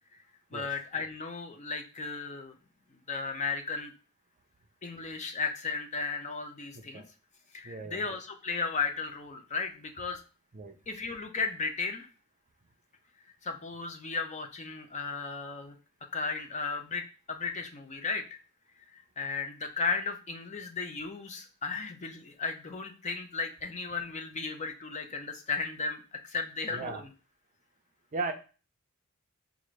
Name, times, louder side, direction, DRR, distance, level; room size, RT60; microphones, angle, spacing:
voice 1, 0.5-2.5 3.1-3.9 4.8-7.0 7.5-10.2 10.9-12.1 13.4-15.8 16.1-18.4 18.9-27.0, left 4 dB, 30° left, 5 dB, 0.5 m, -35 dB
voice 2, 6.7-7.1 7.6-8.0 10.5-10.7 26.7-27.0 28.1-28.3, right 3 dB, 35° right, 6 dB, 0.5 m, -36 dB
4.9 x 2.5 x 3.1 m, 0.34 s
head